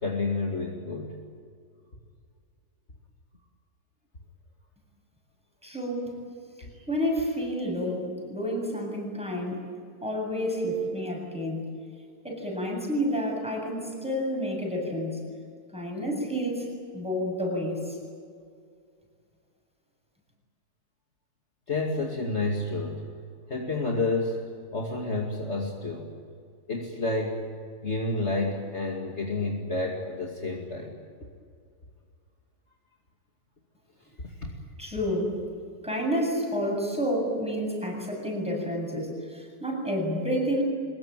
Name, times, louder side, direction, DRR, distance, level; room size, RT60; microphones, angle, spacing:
voice 1, 0.0-1.2 21.7-23.0 23.5-24.5 24.7-26.1 26.7-27.5 27.8-30.9 34.4-34.5, left 2 dB, 40° left, 0 dB, 2.7 m, -29 dB
voice 2, 5.6-6.1 6.6-9.6 10.0-11.7 12.2-15.2 15.7-16.7 16.9-18.0 34.8-35.4 35.8-40.6, equal, 5° right, -1 dB, 7.7 m, -29 dB
25.0 x 21.5 x 9.2 m, 2.2 s
omnidirectional pair, 1.7 m